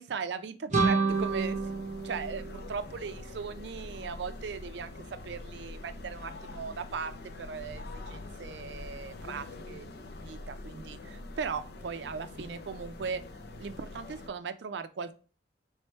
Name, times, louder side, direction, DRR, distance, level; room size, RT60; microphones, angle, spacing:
voice 1, 0.0-13.2 13.6-15.1, right 5 dB, 70° right, 11 dB, 0.4 m, -38 dB
sound 1, 0.7-3.5, right 4 dB, 40° right, 0.9 m, -29 dB
sound 2, 1.1-14.3, left 2 dB, 60° left, 0.5 m, -44 dB
3.2 x 3.2 x 4.4 m, 0.36 s
head